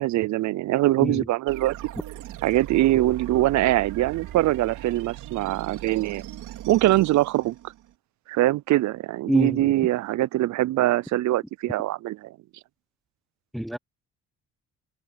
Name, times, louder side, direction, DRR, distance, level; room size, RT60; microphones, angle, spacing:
voice 1, 0.0-1.7 2.4-6.2 6.7-7.6 8.3-12.3, right 16 dB, 70° right, 0.5 m, -23 dB
sound 1, 1.5-7.9, right 13 dB, 85° right, 3.6 m, -39 dB
voice 2, 9.3-9.8 13.5-13.8, equal, ahead, 0.9 m, -26 dB
cardioid pair, 90°, 30 cm